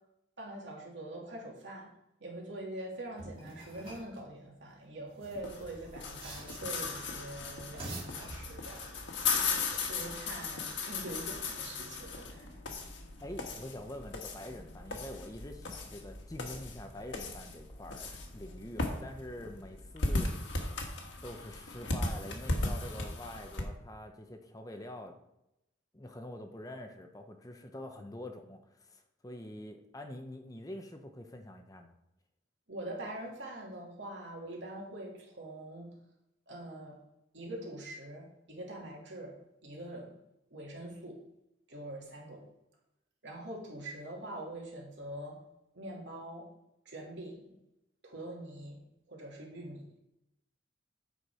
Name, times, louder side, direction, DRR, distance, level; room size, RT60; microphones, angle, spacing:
voice 1, 0.4-1.9 2.2-9.3 9.6-12.6 32.7-36.0 36.5-37.0 37.3-39.3 39.6-40.2 40.5-41.2 41.7-42.4 43.2-45.4 45.7-46.5 46.8-47.5 48.0-48.8 49.1-49.8, right 1 dB, 70° right, -2 dB, 2.6 m, -44 dB
sound 1, 3.2-4.2 5.1-6.9 7.6-8.9, right 2 dB, 30° right, 2.7 m, -46 dB
luisa and Johanna, 5.4-23.6, left 3 dB, 80° left, 1.5 m, -37 dB
voice 2, 13.2-20.7 21.2-25.2 25.9-31.9, left 1 dB, 20° left, 5 dB, 0.7 m, -45 dB
8.2 x 5.8 x 4.8 m, 0.86 s
head